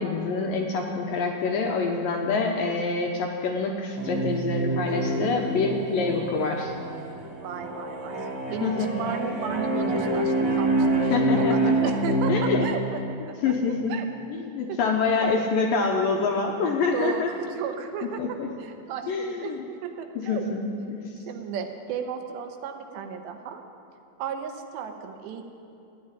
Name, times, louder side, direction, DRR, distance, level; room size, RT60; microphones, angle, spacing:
voice 1, 0.0-6.7 8.6-9.1 11.1-11.9 12.3-12.7 13.4-13.9 14.3-17.3 18.0-18.5 19.1-19.6 20.2-20.6 20.9-21.2, left 4 dB, 75° left, 1 dB, 2.2 m, -26 dB
sound 1, 4.0-12.6, right 1 dB, 50° right, 1.4 m, -26 dB
voice 2, 7.4-8.2 8.5-11.1 11.4-14.1 14.7-14.8 15.1-15.3 16.9-20.5 21.3-23.6 24.2-25.4, right 7 dB, 80° right, 5 dB, 3.3 m, -34 dB
14.5 x 9.6 x 9.9 m, 2.8 s
omnidirectional pair, 5.0 m